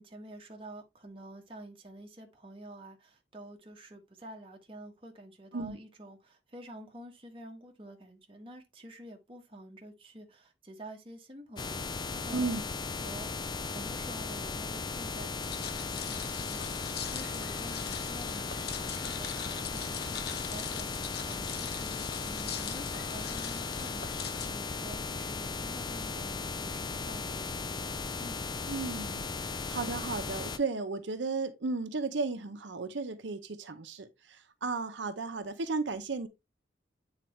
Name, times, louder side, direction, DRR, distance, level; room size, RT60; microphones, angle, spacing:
voice 1, 0.0-12.7 13.0-13.3 13.6-27.9 28.2-28.4, right 1 dB, 30° right, 1.3 m, -49 dB
sound 1, 11.6-30.6, left 4 dB, 25° left, 0.4 m, -37 dB
sound 2, 15.4-24.5, left 8 dB, 55° left, 0.7 m, -42 dB
voice 2, 28.7-36.3, right 3 dB, 85° right, 0.7 m, -34 dB
8.5 x 4.0 x 3.1 m
head